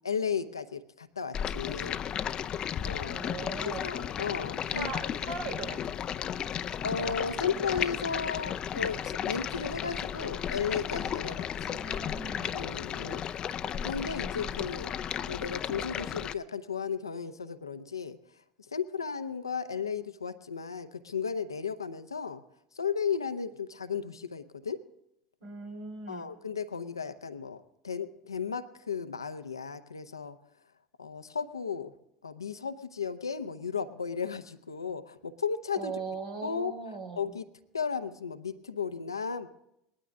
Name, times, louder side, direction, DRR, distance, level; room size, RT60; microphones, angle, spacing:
voice 1, 0.0-2.0 2.8-3.2 3.6-5.0 6.8-11.8 12.5-13.2 13.8-14.9 15.2-18.2 18.7-22.4 22.8-24.8 26.1-30.4 31.0-31.9 32.2-35.9 36.4-36.7 37.2-37.4 37.7-39.5, left 6 dB, 85° left, 11 dB, 0.8 m, -34 dB
Stream, 1.3-16.3, left 9 dB, 40° left, 0.6 m, -34 dB
voice 2, 3.1-3.9 4.7-5.9 11.6-12.5 25.4-26.3 35.7-37.3, right 4 dB, 70° right, 1 dB, 3.7 m, -39 dB
20.0 x 12.5 x 3.6 m, 0.81 s
figure-of-eight pair, 70°, 2 cm